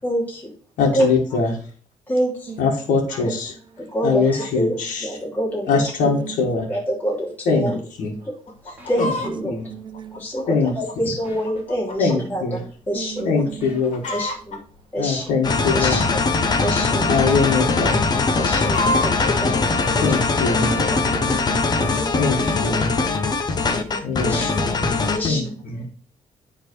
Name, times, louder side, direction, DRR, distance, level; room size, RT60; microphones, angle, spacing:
voice 1, 0.0-0.5 0.9-1.1 2.1-2.6 3.9-4.7 5.0-5.8 6.7-7.8 8.3-8.4 8.6-9.5 10.2-12.6 12.9-13.3 14.1-14.6 14.9-15.2 15.7-16.2 16.6-17.1 18.3-19.5 19.9-20.0 21.1-21.2 21.8-22.1 22.7-23.1 23.7-24.7 25.1-25.4, equal, 15° left, 3.1 m, -26 dB
voice 2, 0.8-1.6 2.6-3.5 4.0-5.2 5.7-6.7 7.5-7.7 8.0-8.1 9.0-9.1 9.4-9.7 10.5-10.7 11.0-11.1 12.0-12.6 13.2-14.2 15.0-16.0 17.1-18.0 20.0-20.7 22.2-22.9 24.0-24.5 24.8-25.9, left 4 dB, 90° left, 2.0 m, -22 dB
voice 3, 6.0-6.5 9.2-10.5 12.9-13.8 16.8-17.5 20.6-22.2 25.3-25.9, right 7 dB, 40° right, 0.8 m, -36 dB
Chicken rooster, 8.5-9.3 9.9-12.2 12.5-12.6 13.2-13.4 13.7-14.6 15.3-17.1 17.5-19.3 19.9-20.0, left 1 dB, 65° left, 2.3 m, -29 dB
sound 1, 8.8-9.2 11.2-11.6 13.6-14.1 16.2-16.7, left 1 dB, 15° right, 3.1 m, -45 dB
sound 2, 15.4-25.3, left 4 dB, 35° left, 1.1 m, -21 dB
9.8 x 4.0 x 4.7 m
cardioid pair, 125°, 13 cm